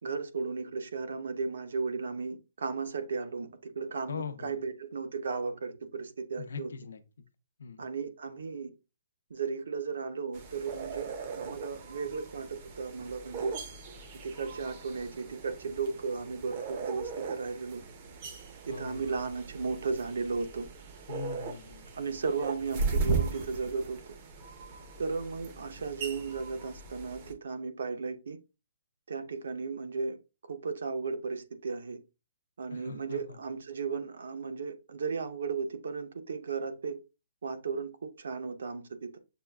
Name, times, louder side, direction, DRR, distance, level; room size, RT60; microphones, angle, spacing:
voice 1, 0.0-6.7 7.8-8.7 9.3-13.5 14.2-17.8 18.7-20.7 22.0-24.1 25.0-28.4 29.1-30.2 30.5-32.0 32.6-37.0 37.4-39.2, right 4 dB, 70° right, 0.7 m, -35 dB
voice 2, 4.1-4.6 6.4-7.3 7.6-7.9 18.7-19.0 21.1-21.9 32.7-33.4, left 6 dB, 85° left, 0.6 m, -41 dB
sound 1, 10.3-27.3, right 4 dB, 25° right, 0.5 m, -38 dB
6.6 x 2.3 x 2.2 m
hypercardioid pair, 180°, 0 cm